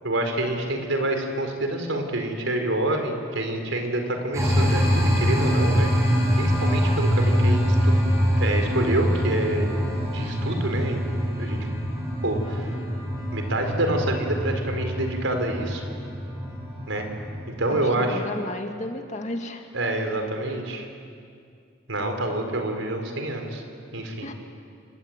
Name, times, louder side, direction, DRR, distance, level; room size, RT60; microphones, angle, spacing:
voice 1, 0.0-8.0 8.4-9.7 10.1-11.0 11.4-11.6 12.2-12.7 13.3-15.9 16.9-17.0 17.5-18.2 19.7-20.9 21.9-23.6 23.9-24.3, right 1 dB, 85° right, 4 dB, 4.6 m, -27 dB
sound 1, 4.3-17.6, equal, 15° right, 6.4 m, -24 dB
voice 2, 17.7-19.7 24.2-24.3, left 1 dB, 35° left, 4 dB, 2.2 m, -33 dB
28.5 x 22.5 x 9.1 m, 2.3 s
head